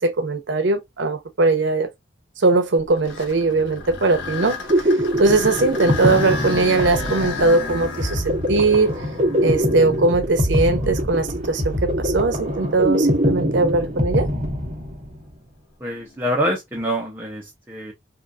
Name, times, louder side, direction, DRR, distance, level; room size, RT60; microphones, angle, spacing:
voice 1, 0.0-1.9 2.4-4.6 5.2-8.9 9.4-14.3, right 3 dB, 80° right, 0.7 m, -20 dB
sound 1, 2.8-10.8 11.4-11.5 12.3-12.4 15.9-16.3, left 4 dB, 85° left, 1.2 m, -33 dB
sound 2, 4.4-15.2, equal, 35° right, 1.0 m, -23 dB
voice 2, 15.8-17.9, equal, 10° right, 0.6 m, -25 dB
3.8 x 2.4 x 2.3 m
head